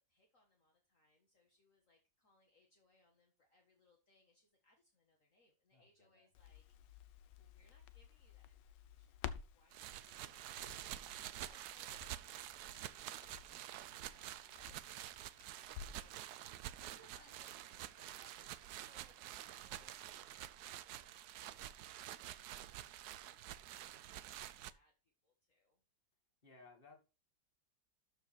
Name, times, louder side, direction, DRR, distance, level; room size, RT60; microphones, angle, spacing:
voice 1, 0.0-6.6 6.9-15.3 16.0-25.8, left 1 dB, 45° left, 1 dB, 2.1 m, -72 dB
voice 2, 5.7-6.3 17.0-17.2 26.4-27.0, left 3 dB, 30° left, 4 dB, 2.4 m, -62 dB
Crackle, 6.4-16.2 16.5-16.6, left 9 dB, 80° left, 1.4 m, -54 dB
sound 1, 9.7-24.7, right 12 dB, 70° right, 1.1 m, -49 dB
12.5 x 4.8 x 4.5 m, 0.32 s
omnidirectional pair, 1.9 m